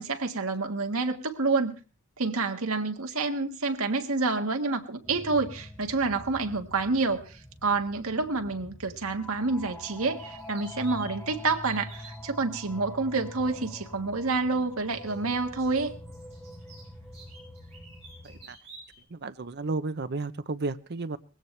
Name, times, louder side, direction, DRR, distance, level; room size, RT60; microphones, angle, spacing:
voice 1, 0.0-1.7 2.2-15.9, right 3 dB, 75° right, 5 dB, 1.6 m, -28 dB
sound 1, 5.0-18.4, left 1 dB, 10° left, 1.4 m, -45 dB
sound 2, 10.2-12.1 13.6-13.7 14.9-19.0, right 3 dB, 30° right, 7.4 m, -50 dB
voice 2, 18.2-18.6 19.1-21.2, right 3 dB, 50° right, 12 dB, 0.7 m, -33 dB
20.0 x 16.5 x 3.3 m, 0.35 s
head